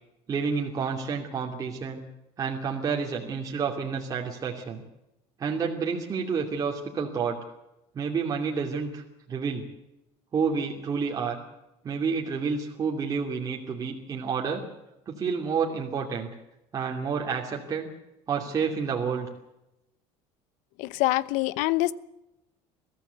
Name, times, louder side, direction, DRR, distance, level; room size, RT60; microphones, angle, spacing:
voice 1, 0.3-2.0 2.4-4.8 5.4-7.4 7.9-9.0 9.3-9.6 10.3-11.4 11.8-14.6 15.1-16.3 16.7-17.9 18.3-19.3, right 5 dB, 25° right, 0 dB, 2.7 m, -29 dB
voice 2, 20.8-21.9, left 18 dB, 75° left, 18 dB, 0.9 m, -25 dB
22.5 x 15.5 x 8.1 m, 0.90 s
cardioid pair, 155°, 13 cm